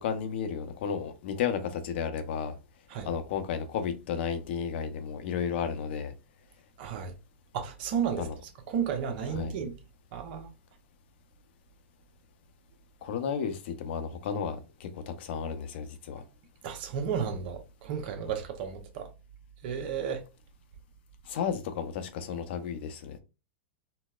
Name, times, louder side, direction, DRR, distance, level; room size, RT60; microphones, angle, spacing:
voice 1, 0.0-2.5 3.0-6.1 8.2-8.3 9.3-9.5 13.0-14.9 15.2-16.2 21.3-23.2, left 7 dB, 65° left, 0.7 m, -33 dB
voice 2, 6.8-7.1 7.5-8.3 8.7-9.7 10.1-10.5 16.6-19.1 19.6-20.2, right 7 dB, 55° right, 0.8 m, -33 dB
4.0 x 2.0 x 2.4 m
hypercardioid pair, 120°, 6 cm